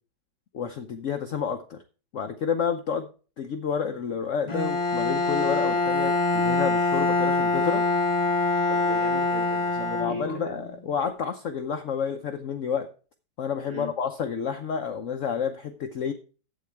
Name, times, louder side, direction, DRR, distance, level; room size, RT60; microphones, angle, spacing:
voice 1, 0.5-1.8 2.1-3.1 3.4-7.9 9.8-12.9 13.4-16.1, left 7 dB, 60° left, 7 dB, 0.9 m, -30 dB
Bowed string instrument, 4.5-10.6, left 3 dB, 30° left, 0.6 m, -24 dB
voice 2, 8.7-10.6 13.7-13.9, right 1 dB, 25° right, -1 dB, 2.9 m, -38 dB
11.5 x 8.3 x 3.3 m, 0.36 s
omnidirectional pair, 1.8 m